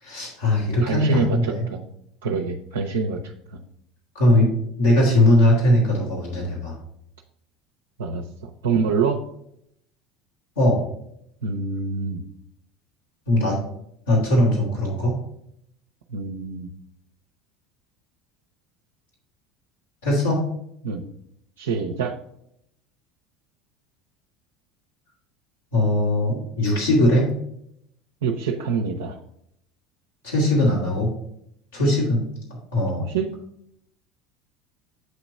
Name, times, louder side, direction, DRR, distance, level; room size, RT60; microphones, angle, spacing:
voice 1, 0.0-1.7 4.1-4.5 4.8-6.7 10.6-10.8 13.3-13.6 14.1-15.1 20.0-20.5 25.7-27.3 30.2-31.1 31.7-32.2 32.7-33.0, left 1 dB, 85° left, -6 dB, 2.2 m, -20 dB
voice 2, 0.8-1.8 2.2-3.2 3.5-3.6 8.0-9.2 11.4-12.2 16.1-16.7 20.8-21.0 21.6-22.1 28.2-29.2 33.0-33.3, right 5 dB, 80° right, 1 dB, 0.5 m, -26 dB
7.9 x 3.0 x 5.1 m, 0.74 s
hypercardioid pair, 75°, 0 cm